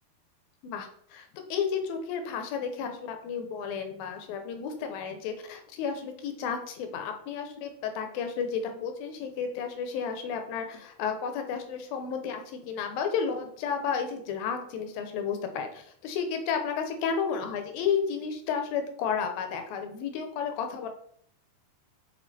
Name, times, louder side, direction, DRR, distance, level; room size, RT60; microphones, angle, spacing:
voice 1, 0.6-20.9, left 6 dB, 75° left, 6 dB, 2.6 m, -32 dB
6.3 x 5.3 x 4.2 m, 0.63 s
omnidirectional pair, 4.5 m